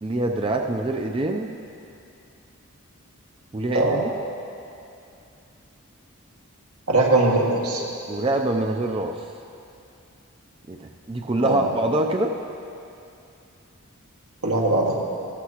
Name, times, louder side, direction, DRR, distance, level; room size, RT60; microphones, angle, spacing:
voice 1, 0.0-1.5 3.5-4.1 8.1-9.2 10.7-12.3, right 2 dB, 25° right, 2 dB, 0.4 m, -25 dB
voice 2, 6.9-7.8 11.4-11.7 14.4-15.0, right 2 dB, 90° right, -2 dB, 1.8 m, -20 dB
14.5 x 14.0 x 2.9 m, 2.6 s
head